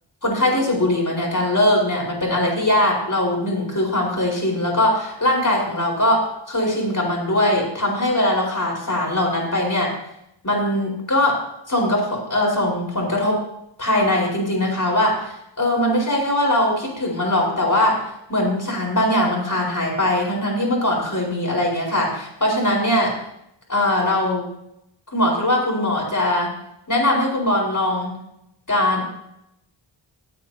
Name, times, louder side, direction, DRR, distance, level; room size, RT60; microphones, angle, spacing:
voice 1, 0.2-9.9 10.4-11.4 11.7-13.4 13.8-23.1 23.7-24.5 25.1-26.5 26.9-28.2 28.7-29.0, left 1 dB, 40° left, -2 dB, 4.4 m, -21 dB
18.5 x 8.8 x 2.8 m, 0.80 s
wide cardioid pair, 55°, 48 cm